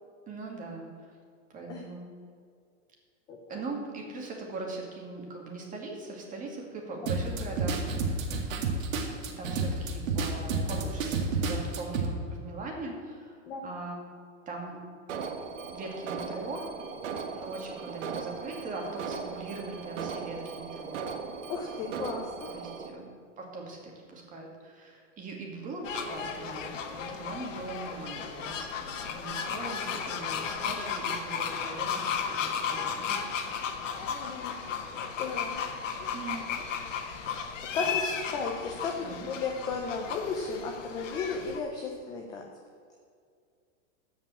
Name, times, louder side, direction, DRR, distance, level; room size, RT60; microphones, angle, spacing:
voice 1, 0.3-1.1 1.5-2.1 3.5-7.8 9.4-14.0 14.5-14.8 15.7-16.7 17.3-21.0 22.5-23.1 23.4-26.7 26.9-33.4 34.0-34.3 36.1-36.6 37.8-38.0 39.0-39.3, right 3 dB, 20° right, 0 dB, 2.2 m, -40 dB
sound 1, 7.1-12.1, right 3 dB, 90° right, 2.1 m, -30 dB
Alarm, 15.1-22.9, right 5 dB, 70° right, 1.4 m, -38 dB
voice 2, 21.4-22.6 34.1-34.6 35.2-35.6 37.7-42.5, left 4 dB, 10° left, 1 dB, 0.3 m, -34 dB
sound 2, 25.8-41.6, left 6 dB, 70° left, 1.7 m, -34 dB
14.0 x 5.4 x 8.5 m, 2.2 s
supercardioid pair, 150°, 39 cm